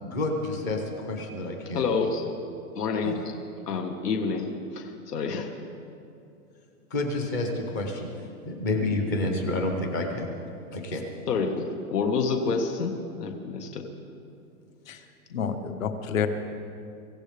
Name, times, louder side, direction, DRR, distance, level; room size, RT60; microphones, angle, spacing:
voice 1, 0.0-1.8 3.0-3.2 6.9-8.1 8.5-10.3 10.7-11.0, left 2 dB, 10° left, 3 dB, 0.6 m, -29 dB
voice 2, 1.7-2.2 2.7-3.1 3.7-4.5 4.7-5.5 11.3-12.9 13.2-13.8, left 5 dB, 85° left, 3 dB, 1.7 m, -28 dB
voice 3, 15.3-16.3, left 7 dB, 60° left, 7 dB, 1.4 m, -29 dB
25.0 x 15.0 x 3.5 m, 2.6 s
hypercardioid pair, 170°, 46 cm